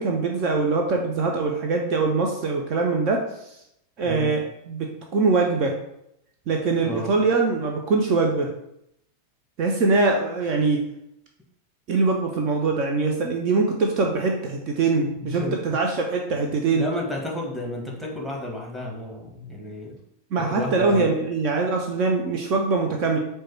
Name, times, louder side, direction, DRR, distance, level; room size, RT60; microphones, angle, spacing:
voice 1, 0.0-3.2 4.0-4.4 4.7-5.7 6.5-8.5 9.6-10.8 11.9-16.8 20.3-23.2, right 3 dB, 40° right, 2 dB, 0.5 m, -23 dB
voice 2, 6.8-7.1 15.2-15.6 16.7-20.0 20.4-21.1, left 1 dB, ahead, -2 dB, 1.1 m, -32 dB
4.6 x 2.2 x 4.5 m, 0.79 s
figure-of-eight pair, 90°, 0 cm